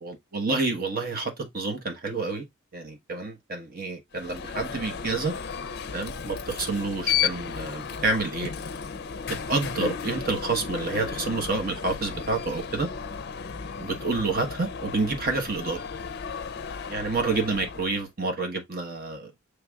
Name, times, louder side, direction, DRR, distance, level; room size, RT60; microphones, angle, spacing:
voice 1, 0.0-2.5 2.7-5.3 5.9-8.5 9.5-12.9 13.8-15.8 16.9-19.3, right 3 dB, 45° right, 1.2 m, -28 dB
Alarm, 4.1-18.1, left 7 dB, 50° left, 0.5 m, -34 dB
6.8 x 3.3 x 2.3 m
head